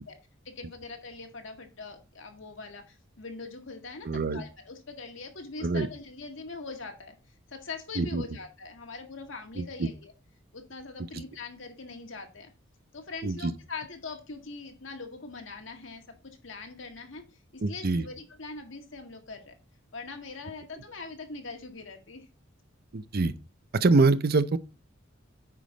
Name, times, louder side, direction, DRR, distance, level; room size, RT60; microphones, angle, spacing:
voice 1, 0.5-7.2 7.5-10.1 10.5-12.5 12.9-17.2 17.5-19.5 19.9-22.3, left 4 dB, 70° left, 1.7 m, -42 dB
voice 2, 4.0-4.4 5.6-5.9 8.0-8.2 9.6-9.9 11.1-11.2 13.2-13.5 17.6-18.0 22.9-23.3 23.7-24.6, right 3 dB, 50° right, 0.6 m, -25 dB
9.3 x 5.2 x 3.9 m
head